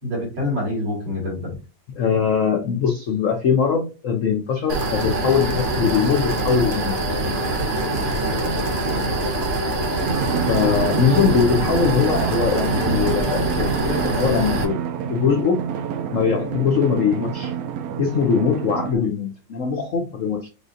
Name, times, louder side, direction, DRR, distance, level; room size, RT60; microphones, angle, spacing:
voice 1, 0.0-1.5 12.7-13.0 18.9-19.1, left 1 dB, 70° right, -4 dB, 3.1 m, -27 dB
voice 2, 2.0-6.9 10.5-14.8 15.1-15.6 16.1-17.5 18.0-20.5, left 6 dB, 85° left, 4 dB, 0.7 m, -21 dB
sound 1, 4.7-14.6, right 1 dB, 40° right, 0.8 m, -24 dB
Drum, 10.0-19.0, right 8 dB, 90° right, 0.7 m, -28 dB
6.4 x 2.6 x 2.5 m, 0.31 s
omnidirectional pair, 2.1 m